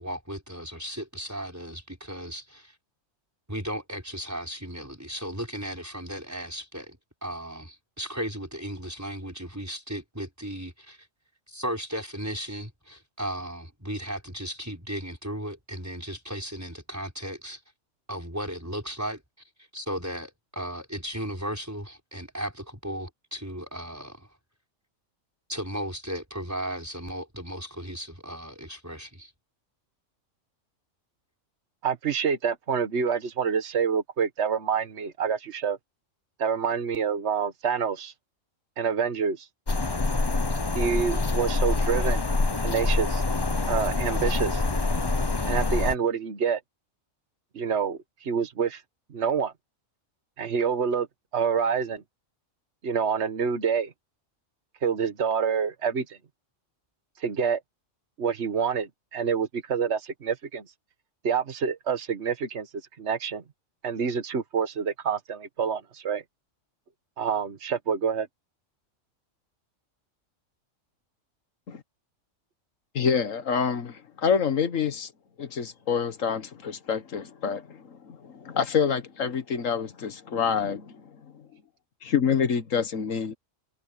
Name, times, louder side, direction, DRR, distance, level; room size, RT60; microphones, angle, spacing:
voice 1, 0.0-2.7 3.5-11.0 11.5-17.6 18.1-19.2 19.7-24.3 25.5-29.3, equal, 10° right, 5.4 m, -35 dB
voice 2, 31.8-35.8 36.4-38.1 38.8-39.5 40.7-42.2 42.6-43.2 43.7-44.6 45.5-46.6 47.5-48.8 49.1-49.5 50.4-51.1 51.3-52.0 52.8-53.9 54.8-56.2 57.2-57.6 58.2-60.6 61.2-62.7 63.0-63.4 63.8-66.2 67.2-68.3, right 6 dB, 60° right, 1.6 m, -27 dB
sound 1, 39.7-45.9, left 3 dB, 20° left, 0.9 m, -25 dB
voice 3, 73.0-75.1 75.4-81.0 82.0-83.3, left 6 dB, 85° left, 1.7 m, -27 dB
omnidirectional pair, 1.3 m